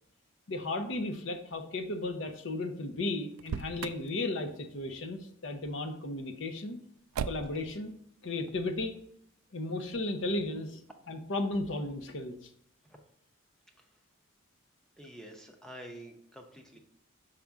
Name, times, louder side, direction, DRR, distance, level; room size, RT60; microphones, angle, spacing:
voice 1, 0.5-6.8 7.2-7.9 8.2-9.0 9.5-10.8 11.1-12.4, left 2 dB, 60° left, 7 dB, 0.7 m, -34 dB
Motor vehicle (road), 3.3-4.1 7.1-7.7, right 7 dB, 90° right, 0.3 m, -36 dB
voice 2, 15.0-16.8, right 1 dB, 5° left, 2 dB, 0.7 m, -48 dB
5.8 x 5.0 x 3.5 m, 0.69 s
head